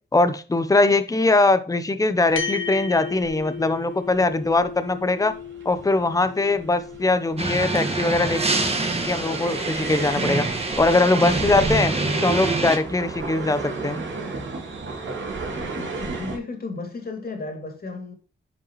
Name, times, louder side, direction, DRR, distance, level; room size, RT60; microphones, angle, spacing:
voice 1, 0.1-5.4 5.6-8.4 9.0-10.5 10.8-12.0 12.2-14.0, left 2 dB, 15° left, 0.8 m, -21 dB
sound 1, 2.2-16.4, right 3 dB, 70° right, 2.5 m, -34 dB
sound 2, 2.4-11.0, left 7 dB, 90° left, 1.4 m, -37 dB
sound 3, 7.4-12.8, right 2 dB, 30° right, 1.7 m, -25 dB
voice 2, 15.8-18.1, left 3 dB, 50° left, 2.8 m, -34 dB
9.6 x 5.4 x 3.1 m
cardioid pair, 85°, 20 cm